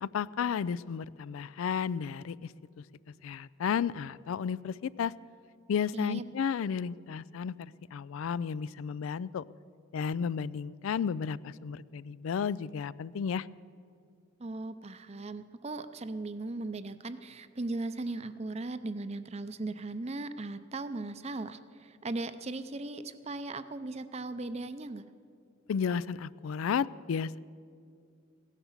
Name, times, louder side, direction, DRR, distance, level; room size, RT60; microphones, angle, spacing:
voice 1, 0.0-2.5 3.2-5.1 5.7-9.4 9.9-13.5 25.7-27.4, left 7 dB, 80° left, 19 dB, 0.3 m, -33 dB
voice 2, 5.9-6.2 14.4-25.1, right 2 dB, 30° right, 12 dB, 0.6 m, -38 dB
16.5 x 11.0 x 7.2 m, 2.4 s
head